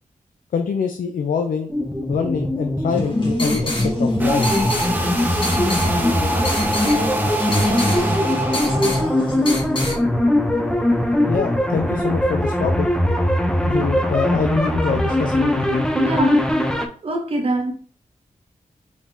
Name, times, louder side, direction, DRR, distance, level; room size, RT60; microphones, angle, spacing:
voice 1, 0.5-1.7 2.1-3.7 4.0-4.5 11.3-12.9 13.6-15.8, left 6 dB, 80° left, 0.5 m, -25 dB
sound 1, 1.7-16.9, left 1 dB, 5° left, 0.5 m, -21 dB
sound 2, 2.9-10.0, left 2 dB, 35° left, 1.5 m, -27 dB
sound 3, 4.2-9.2, right 1 dB, 15° right, 0.8 m, -25 dB
voice 2, 15.9-16.4 17.0-17.7, right 2 dB, 45° right, 0.7 m, -23 dB
5.0 x 3.5 x 2.7 m
wide cardioid pair, 125°, 14 cm